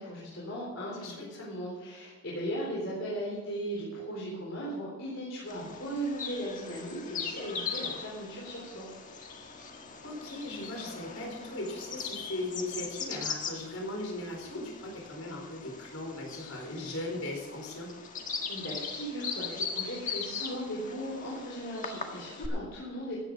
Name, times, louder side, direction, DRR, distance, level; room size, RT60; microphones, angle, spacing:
voice 1, 0.0-8.9 18.5-23.2, equal, 60° left, -6 dB, 4.0 m, -37 dB
voice 2, 1.0-1.5 10.0-17.9, left 1 dB, 75° left, 0 dB, 4.5 m, -38 dB
Bird vocalization bird call bird song, 5.5-22.5, left 5 dB, 35° left, 1.5 m, -40 dB
15.5 x 10.0 x 5.2 m, 1.4 s
head